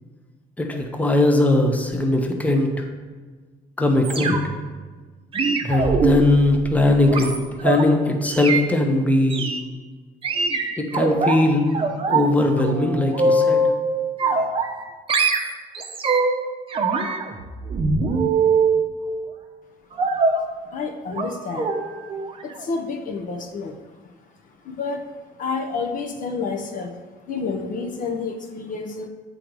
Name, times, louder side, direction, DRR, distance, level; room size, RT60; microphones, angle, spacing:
voice 1, 0.6-2.8 3.8-4.3 5.6-9.5 10.8-11.6 12.1-13.7, left 2 dB, 10° left, 3 dB, 0.8 m, -20 dB
sound 1, 4.0-4.7 5.3-7.8 8.3-8.6 9.3-9.6 10.2-11.4 11.7-12.3 12.6-13.8 14.2-14.8 15.1-16.4 16.7-18.8 20.0-20.4 21.1-21.3 21.6-21.8 22.1-22.3 22.6-22.7, right 3 dB, 35° right, 0.7 m, -22 dB
voice 2, 20.7-21.7 22.4-23.8 24.6-25.1 25.4-27.0 27.3-29.1, left 4 dB, 50° left, 4 dB, 0.7 m, -29 dB
7.6 x 3.9 x 4.7 m, 1.4 s
cardioid pair, 110°, 17 cm